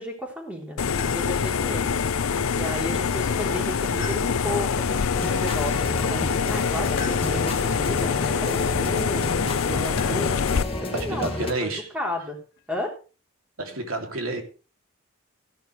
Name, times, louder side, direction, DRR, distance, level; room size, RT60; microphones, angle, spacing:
voice 1, 0.0-2.0 2.5-10.4 10.8-12.4 12.7-13.0, equal, 5° right, 3.8 m, -33 dB
sound 1, 0.8-10.6, left 6 dB, 85° left, 0.5 m, -25 dB
sound 2, 1.0-1.6 4.0-4.8 7.0-7.7 10.0-10.5 12.2-12.8, left 4 dB, 50° left, 2.7 m, -40 dB
sound 3, 5.1-11.5, left 1 dB, 25° left, 2.2 m, -32 dB
voice 2, 10.9-11.9 13.6-14.4, right 2 dB, 85° right, 3.1 m, -29 dB
16.0 x 11.0 x 3.4 m
head